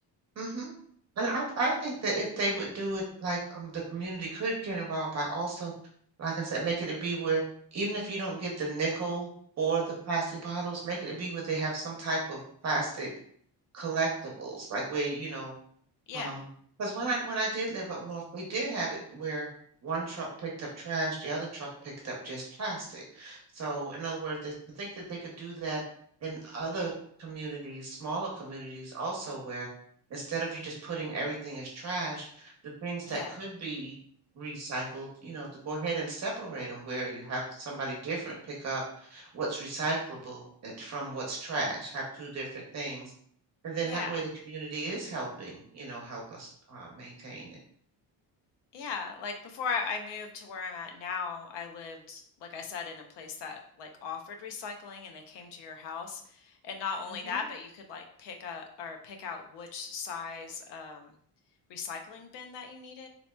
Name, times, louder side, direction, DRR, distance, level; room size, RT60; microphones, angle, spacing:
voice 1, 0.4-0.7 1.2-5.7 6.2-7.4 7.7-9.3 9.6-13.1 13.7-15.5 16.1-16.4 16.8-19.5 19.8-25.8 26.2-26.9 27.2-29.7 30.1-32.5 32.8-34.0 34.3-43.1 43.6-47.6 57.2-57.4, right 3 dB, 40° right, -2 dB, 0.8 m, -34 dB
voice 2, 16.1-16.4 33.1-33.4 43.8-44.2 48.7-61.1 61.7-63.1, left 5 dB, 80° left, 4 dB, 0.7 m, -38 dB
3.9 x 2.9 x 2.2 m, 0.62 s
cardioid pair, 160°, 41 cm